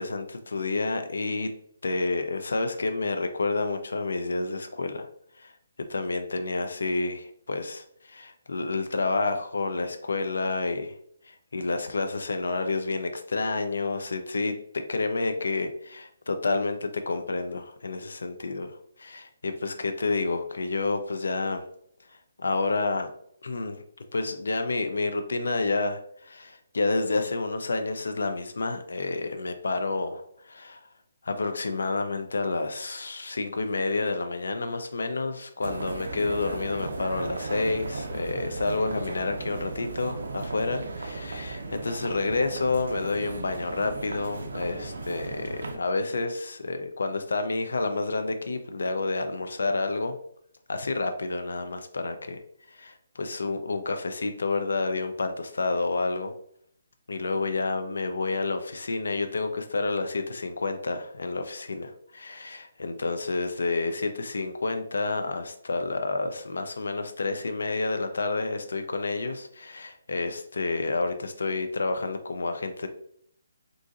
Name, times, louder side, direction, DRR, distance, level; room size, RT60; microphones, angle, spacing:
voice 1, 0.0-1.5 1.8-5.1 5.4-5.5 5.9-10.9 11.3-21.6 22.4-23.1 23.4-23.8 24.1-30.9 31.2-50.2 50.7-52.4 52.7-56.3 57.1-72.9, left 3 dB, 85° left, 7 dB, 0.4 m, -29 dB
sound 1, 35.6-45.8, right 3 dB, 70° right, 0.5 m, -36 dB
3.8 x 2.5 x 2.4 m, 0.66 s
hypercardioid pair, 175°, 0 cm